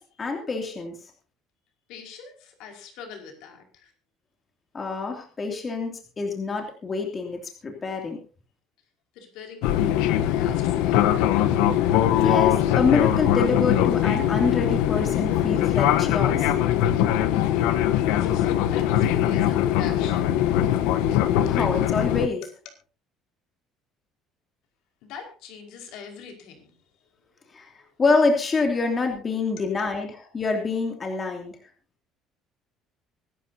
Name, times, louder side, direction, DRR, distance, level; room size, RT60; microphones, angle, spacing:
voice 1, 0.2-1.0 4.7-8.2 12.2-16.5 21.4-22.4 27.5-27.7 28.0-31.6, left 3 dB, 25° left, 2.8 m, -26 dB
voice 2, 1.9-3.9 9.1-11.1 18.2-20.3 25.0-26.7 27.0-27.5 27.8-28.0, left 6 dB, 75° left, 5.0 m, -42 dB
Fixed-wing aircraft airplane, 9.6-22.3, left 11 dB, 90° left, 1.0 m, -21 dB
24.5 x 12.0 x 2.8 m
cardioid pair, 140°, 0 cm